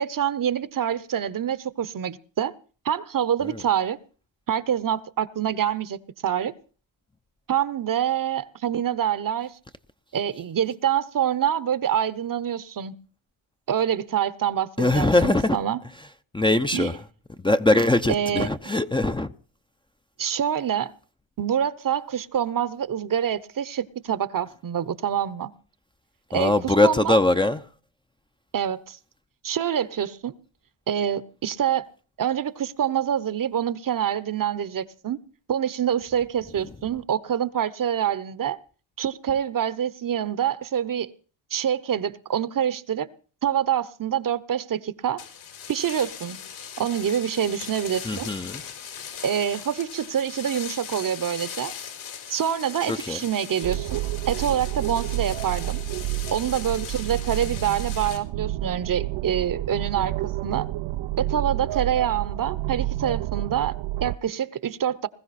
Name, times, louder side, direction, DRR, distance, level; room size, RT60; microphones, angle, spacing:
voice 1, 0.0-2.5 2.8-4.0 4.5-6.5 7.5-9.6 10.1-13.0 13.7-15.8 16.7-16.9 18.1-18.5 20.2-20.9 21.4-25.5 26.3-27.2 28.5-29.0 29.4-30.4 30.9-31.9 32.2-35.2 35.5-38.6 39.0-41.1 41.5-43.1 43.4-45.2 45.7-46.4 46.8-48.3 49.2-51.7 52.3-54.0 54.3-55.8 56.3-60.7 61.2-65.1, right 9 dB, 45° right, 1.0 m, -26 dB
voice 2, 14.8-15.6 16.3-17.0 17.4-19.3 26.3-27.6 48.0-48.6 52.9-53.2, left 2 dB, 10° left, 0.7 m, -21 dB
sound 1, 45.2-58.2, left 8 dB, 80° left, 4.8 m, -39 dB
sound 2, 53.6-64.2, right 15 dB, 75° right, 0.7 m, -30 dB
20.5 x 14.5 x 4.2 m
cardioid pair, 90°, 47 cm